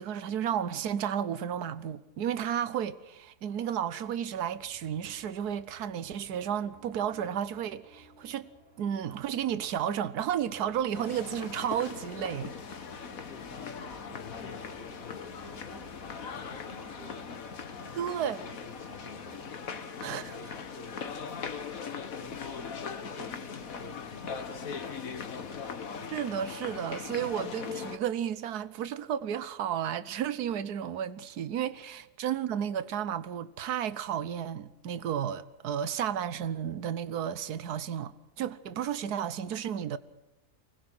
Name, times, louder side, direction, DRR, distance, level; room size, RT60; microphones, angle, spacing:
voice 1, 0.0-8.5 8.8-12.5 18.0-18.4 20.0-20.2 26.1-40.0, right 9 dB, 80° right, 1.5 m, -32 dB
sound 1, 2.6-20.1, right 3 dB, 40° right, 2.4 m, -59 dB
sound 2, 10.9-28.0, left 6 dB, 60° left, 1.8 m, -40 dB
voice 2, 13.3-25.6, left 3 dB, 40° left, 2.0 m, -52 dB
24.0 x 20.5 x 6.3 m
omnidirectional pair, 1.7 m